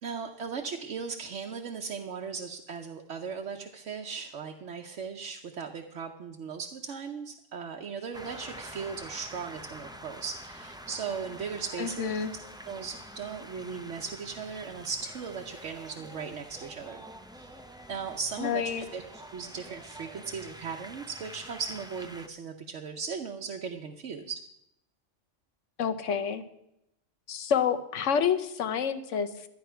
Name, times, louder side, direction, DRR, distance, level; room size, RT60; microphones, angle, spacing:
voice 1, 0.0-17.0 17.4-17.6 17.9-24.4, right 5 dB, 70° right, 2 dB, 1.1 m, -38 dB
sound 1, 8.1-22.3, equal, 5° right, 0.3 m, -47 dB
voice 2, 11.8-12.3 18.4-18.8 25.8-26.4 27.3-29.3, left 7 dB, 75° left, 9 dB, 1.2 m, -28 dB
13.0 x 9.6 x 5.6 m, 0.82 s
omnidirectional pair, 1.3 m